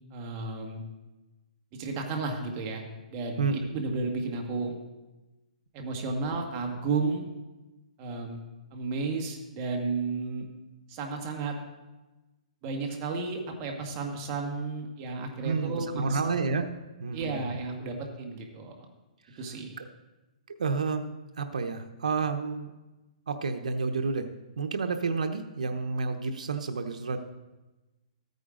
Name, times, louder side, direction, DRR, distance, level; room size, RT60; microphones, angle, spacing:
voice 1, 0.1-0.8 1.7-2.8 3.1-4.7 5.7-7.3 8.0-8.4 8.7-10.4 10.9-11.5 12.6-16.2 17.1-18.9 19.4-19.8, right 3 dB, 30° right, 2 dB, 1.8 m, -33 dB
voice 2, 3.4-3.7 15.4-16.7 17.0-17.4 19.3-19.4 19.8-19.9 20.5-21.1 21.4-22.7 23.3-24.3 24.6-27.2, right 4 dB, 90° right, 5 dB, 0.9 m, -30 dB
13.5 x 9.2 x 3.8 m, 1.1 s
hypercardioid pair, 155°, 4 cm